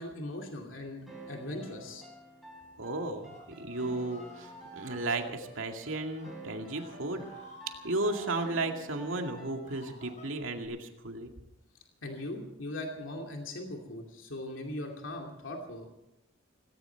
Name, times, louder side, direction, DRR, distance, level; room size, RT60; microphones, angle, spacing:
voice 1, 0.0-2.0 12.0-15.9, left 1 dB, 75° left, 1 dB, 2.6 m, -40 dB
sound 1, 1.1-9.9, right 2 dB, ahead, 4.9 m, -49 dB
Screaming, 2.8-5.2 6.0-6.3 6.6-8.7 9.3-10.7, left 2 dB, 35° left, 6.3 m, -53 dB
voice 2, 2.8-7.3 7.8-11.3, right 2 dB, 80° right, 3 dB, 2.2 m, -34 dB
18.0 x 17.5 x 4.6 m, 0.89 s
head